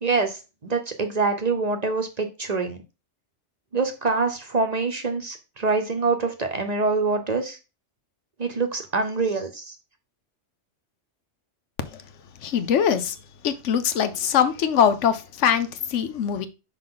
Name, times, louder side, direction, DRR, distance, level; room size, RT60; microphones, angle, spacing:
voice 1, 0.0-2.8 3.7-7.6 8.4-9.8, right 4 dB, 40° right, 0.8 m, -25 dB
voice 2, 12.4-13.2 13.4-16.5, left 8 dB, 80° left, 1.0 m, -22 dB
5.9 x 4.9 x 3.8 m
omnidirectional pair, 1.2 m